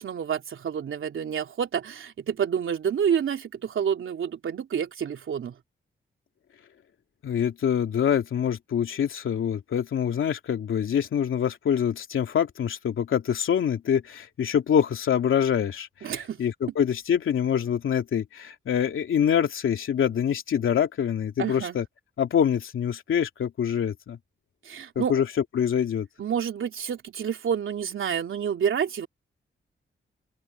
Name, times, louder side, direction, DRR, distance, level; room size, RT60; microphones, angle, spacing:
voice 1, 0.0-5.5 16.0-16.4 21.4-21.8 24.6-25.1 26.2-29.1, right 8 dB, 80° right, 3.3 m, -28 dB
voice 2, 7.2-21.9 22.2-24.2 24.9-25.3 25.5-26.1, left 8 dB, 85° left, 2.8 m, -25 dB
open air
cardioid pair, 55°, 20 cm